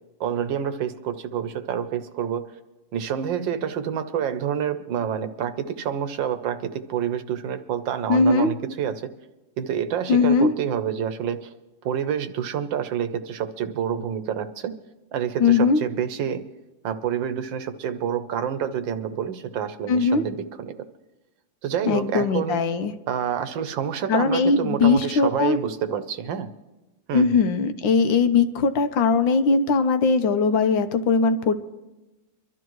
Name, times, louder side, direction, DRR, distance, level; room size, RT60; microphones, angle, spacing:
voice 1, 0.2-2.4 2.9-9.1 9.6-11.5 11.8-14.7 15.1-16.4 16.8-20.8 21.6-22.6 23.1-26.5 27.1-27.3, right 8 dB, 75° right, 10 dB, 1.5 m, -28 dB
voice 2, 8.1-8.5 10.1-10.5 15.4-15.8 19.9-20.2 21.9-22.9 24.1-25.6 27.1-31.5, left 4 dB, 80° left, 8 dB, 1.5 m, -20 dB
24.0 x 12.5 x 3.1 m, 1.1 s
omnidirectional pair, 2.1 m